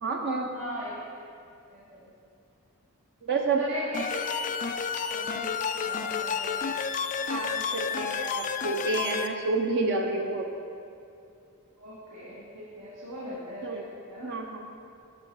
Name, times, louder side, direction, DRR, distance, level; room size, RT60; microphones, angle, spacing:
voice 1, 0.0-0.5 3.2-3.6 7.3-10.5 13.6-13.9 14.2-14.6, right 3 dB, 50° right, 2 dB, 0.6 m, -29 dB
voice 2, 0.5-1.0 1.7-2.1 3.6-4.4 5.1-5.5 5.8-6.6 11.8-13.8 14.1-14.3, equal, 85° right, -9 dB, 1.8 m, -39 dB
sound 1, 3.9-9.3, left 6 dB, 35° left, 0.3 m, -31 dB
10.5 x 4.4 x 4.6 m, 2.5 s
head